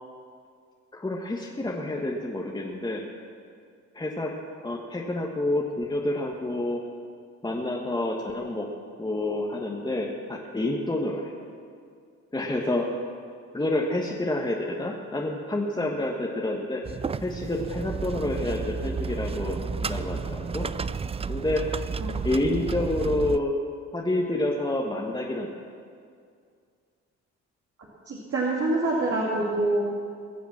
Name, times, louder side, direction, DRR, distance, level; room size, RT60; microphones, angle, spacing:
voice 1, 0.9-3.1 3.9-4.3 4.6-6.8 7.4-8.7 9.0-11.3 12.3-12.9 13.5-16.8 17.2-20.7 21.3-21.6 22.2-23.5 23.9-25.5, left 1 dB, 15° left, -1 dB, 1.4 m, -28 dB
sound 1, 16.8-23.4, right 5 dB, 20° right, 0.4 m, -32 dB
voice 2, 28.1-29.8, right 2 dB, 50° right, -4 dB, 2.5 m, -26 dB
21.0 x 7.1 x 7.3 m, 2.2 s
cardioid pair, 90°, 30 cm